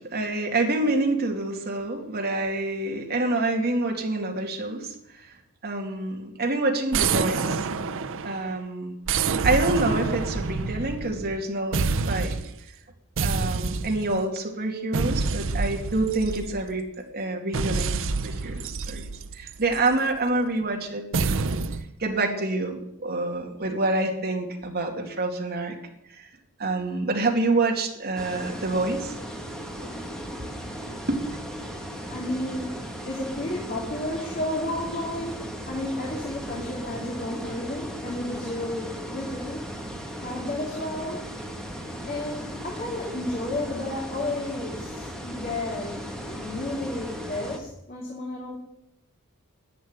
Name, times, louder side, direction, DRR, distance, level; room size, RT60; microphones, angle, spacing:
voice 1, 0.0-5.4 5.6-7.6 8.2-9.0 9.4-12.4 13.2-16.8 17.1-19.0 19.3-21.6 22.0-25.8 26.1-26.3 26.6-29.1 29.8-29.9 31.1-31.2, right 2 dB, 45° right, 2 dB, 2.4 m, -27 dB
sound 1, 6.9-8.5 9.1-11.4 11.7-12.6 13.2-14.2 14.9-16.8 17.5-19.9 21.1-21.9, right 4 dB, 65° right, 0.7 m, -27 dB
sound 2, 28.2-47.6, equal, 5° left, 1.9 m, -37 dB
voice 2, 32.1-39.7 40.2-41.3 42.1-48.6, left 1 dB, 40° left, -2 dB, 2.9 m, -32 dB
11.0 x 8.3 x 9.7 m, 0.82 s
head